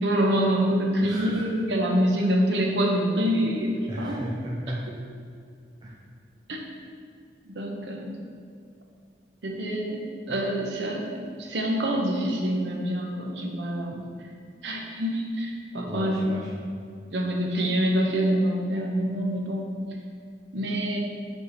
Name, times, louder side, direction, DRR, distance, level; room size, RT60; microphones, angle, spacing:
voice 1, 0.0-4.2 6.5-6.6 7.4-8.2 9.4-10.0 10.3-14.0 14.6-16.2 17.1-19.7 20.5-21.0, equal, 80° right, 0 dB, 0.9 m, -26 dB
voice 2, 1.0-1.4 3.9-4.8 5.8-5.9 15.9-16.7, equal, 20° right, -5 dB, 0.6 m, -34 dB
5.2 x 4.8 x 4.0 m, 2.3 s
head